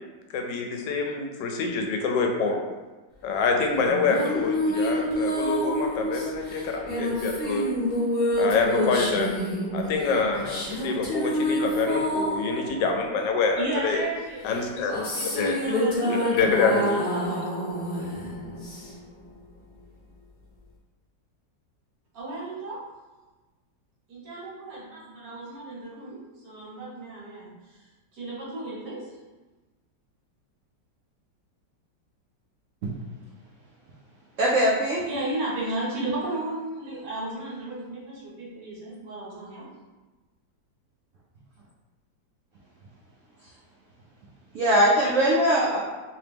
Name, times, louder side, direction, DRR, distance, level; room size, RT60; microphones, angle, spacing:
voice 1, 0.3-2.6 3.2-7.7 8.4-9.3 9.7-14.0 14.4-15.0 15.4-15.5 16.3-17.1 17.9-18.1, left 4 dB, 80° left, 3 dB, 1.2 m, -26 dB
sound 1, 3.7-13.7 14.5-19.2, left 1 dB, 45° left, 0.8 m, -28 dB
voice 2, 13.6-14.7 14.9-16.6 16.8-17.0 17.3-17.7 22.1-22.8 24.1-26.2 26.4-27.9 28.1-29.0 35.0-39.7, right 2 dB, 55° right, -6 dB, 1.6 m, -34 dB
voice 3, 34.4-35.0 44.5-45.8, equal, 75° right, -5 dB, 0.7 m, -21 dB
3.1 x 2.9 x 3.4 m, 1.2 s
omnidirectional pair, 1.9 m